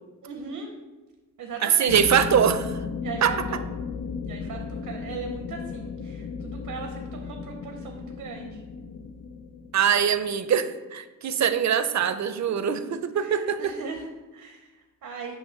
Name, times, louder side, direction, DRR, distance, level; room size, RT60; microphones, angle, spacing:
voice 1, 0.2-0.7 1.4-2.2 3.0-3.6 4.3-8.6 11.3-11.4 12.5-12.8 13.2-15.4, right 4 dB, 90° right, 3 dB, 0.8 m, -39 dB
voice 2, 1.6-2.8 3.2-3.5 9.7-13.7, right 8 dB, 60° right, 11 dB, 0.5 m, -23 dB
sound 1, 1.9-10.3, left 5 dB, 90° left, 0.6 m, -35 dB
9.0 x 3.0 x 6.2 m, 1.2 s
wide cardioid pair, 120°, 32 cm